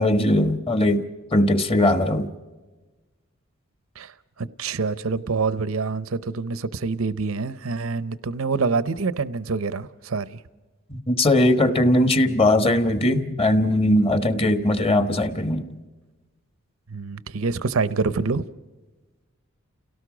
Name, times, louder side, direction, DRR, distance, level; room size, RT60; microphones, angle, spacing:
voice 1, 0.0-2.3 10.9-15.7, left 1 dB, 30° left, 1.3 m, -20 dB
voice 2, 4.4-10.4 16.9-18.4, right 4 dB, 85° right, 0.7 m, -26 dB
29.5 x 17.5 x 5.0 m
head